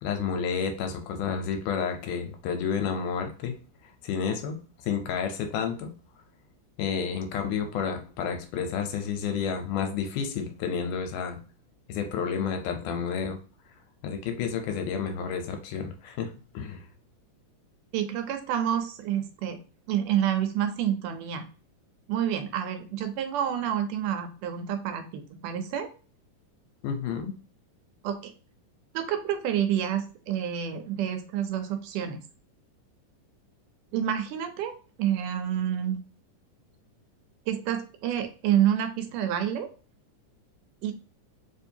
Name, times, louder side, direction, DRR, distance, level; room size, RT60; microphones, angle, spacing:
voice 1, 0.0-3.6 4.0-4.6 4.8-5.9 6.8-11.4 11.9-13.4 14.0-16.8 26.8-27.3, left 7 dB, 80° left, 5 dB, 2.2 m, -30 dB
voice 2, 17.9-19.6 19.9-21.5 22.1-25.9 28.0-28.3 28.9-32.2 33.9-34.7 35.0-36.0 37.5-39.7 40.8-40.9, right 10 dB, 85° right, 7 dB, 2.2 m, -28 dB
4.9 x 2.6 x 2.7 m, 0.36 s
omnidirectional pair, 3.7 m